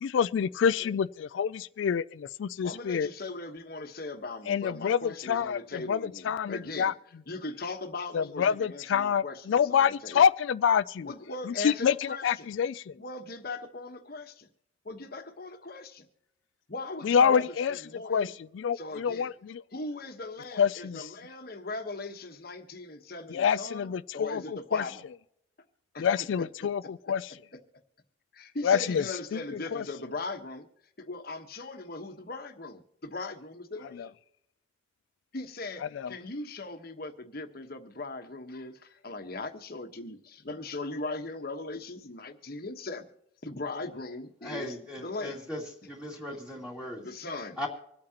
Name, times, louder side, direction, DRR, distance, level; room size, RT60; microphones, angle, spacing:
voice 1, 0.0-3.1 4.5-6.9 8.1-11.1 11.5-12.9 17.0-17.8 18.1-19.6 20.6-21.0 23.3-24.8 26.0-27.3 28.6-29.0 29.3-29.8 34.0-34.1 35.9-36.1, left 7 dB, 75° left, 0.3 m, -27 dB
voice 2, 2.6-6.9 7.3-10.2 11.0-12.5 13.0-14.5 14.8-16.1 16.7-18.3 18.7-19.3 19.7-25.0 25.9-26.1 27.5-27.6 28.3-30.7 31.0-34.1 35.3-43.0 43.4-45.4 46.3-46.4 46.8-47.6, left 2 dB, 50° left, 1.2 m, -39 dB
voice 3, 44.4-45.6 45.9-47.0 47.6-47.7, left 1 dB, 5° right, 2.3 m, -38 dB
25.5 x 8.7 x 2.9 m
head